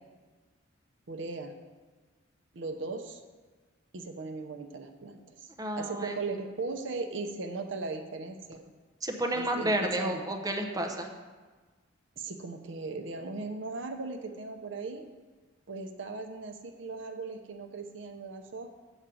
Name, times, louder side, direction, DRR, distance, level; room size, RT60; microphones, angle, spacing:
voice 1, 1.1-1.5 2.5-3.2 3.9-5.5 5.8-8.6 9.3-10.2 12.2-15.0 15.7-18.7, right 3 dB, 65° right, 6 dB, 0.6 m, -38 dB
voice 2, 5.6-6.1 9.0-11.1, right 1 dB, 20° right, 3 dB, 0.7 m, -31 dB
7.1 x 5.0 x 6.9 m, 1.4 s
head